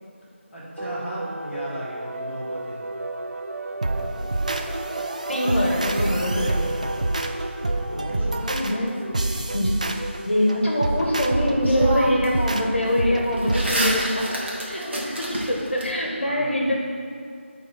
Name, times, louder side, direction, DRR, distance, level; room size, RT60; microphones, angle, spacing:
voice 1, 0.5-2.8 7.9-9.2 13.6-13.7 16.2-16.8, equal, 5° left, -17 dB, 1.5 m, -35 dB
sound 1, 0.8-15.2, right 2 dB, 90° right, 0.6 m, -35 dB
sound 2, 3.8-14.1, right 2 dB, 35° right, 0.4 m, -27 dB
voice 2, 5.3-6.6 8.6-8.9 9.3-9.7 10.2-14.2 14.7-16.8, equal, 60° left, -2 dB, 1.4 m, -24 dB
sound 3, 7.6-8.9 11.1-11.2 11.6-12.4 12.7-15.9, equal, 55° right, 1.7 m, -30 dB
10.5 x 3.9 x 4.2 m, 2.4 s
figure-of-eight pair, 175°, 7 cm